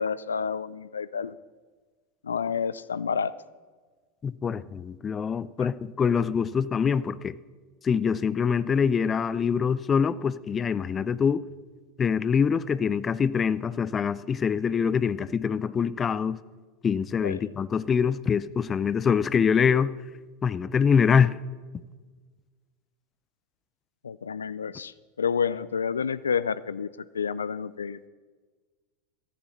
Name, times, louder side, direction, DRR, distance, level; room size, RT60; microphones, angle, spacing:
voice 1, 0.0-1.3 2.2-3.3 17.2-17.5 24.0-26.9 27.1-28.0, left 6 dB, 80° left, 18 dB, 0.4 m, -29 dB
voice 2, 4.2-7.3 7.8-11.4 12.0-16.4 16.8-19.9 20.4-21.4, left 6 dB, 25° left, 18 dB, 0.5 m, -24 dB
16.0 x 14.0 x 4.3 m, 1.4 s
figure-of-eight pair, 85°, 0 cm